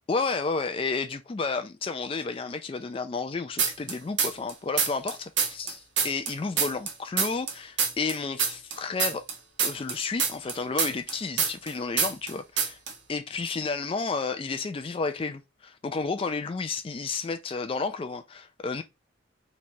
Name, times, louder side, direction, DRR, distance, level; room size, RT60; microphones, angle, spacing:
voice 1, 0.1-9.2 9.6-12.8 13.1-18.8, left 4 dB, 25° left, 0.3 m, -31 dB
sound 1, 3.6-4.5 4.8-7.5 7.8-11.7 12.0-12.3 12.6-12.9, right 6 dB, 65° right, 0.8 m, -26 dB
3.0 x 2.3 x 4.2 m
head